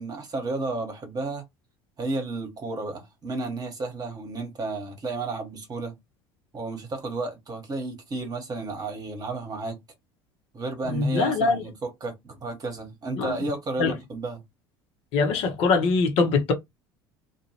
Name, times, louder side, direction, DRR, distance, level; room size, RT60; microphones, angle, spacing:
voice 1, 0.0-1.4 2.0-5.9 6.5-9.8 10.5-14.4, right 3 dB, 30° right, 1.2 m, -32 dB
voice 2, 10.9-11.6 13.2-13.3 13.8-13.9 15.1-16.5, left 4 dB, 50° left, 0.9 m, -22 dB
2.5 x 2.2 x 3.0 m
figure-of-eight pair, 70°, 13 cm